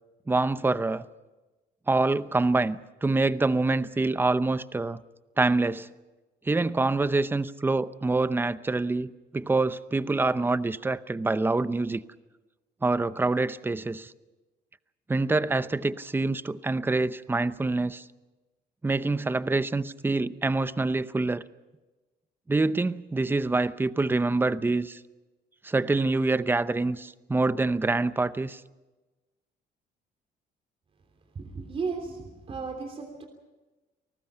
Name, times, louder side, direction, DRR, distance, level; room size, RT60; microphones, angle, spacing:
voice 1, 0.3-1.0 1.9-5.0 5.4-5.9 6.5-12.0 12.8-14.1 15.1-18.0 18.8-21.4 22.5-25.0 25.6-28.6, right 3 dB, 10° right, 0.7 m, -26 dB
voice 2, 31.3-33.3, right 4 dB, 35° right, 3.1 m, -35 dB
29.0 x 19.0 x 5.7 m
cardioid pair, 110°, 17 cm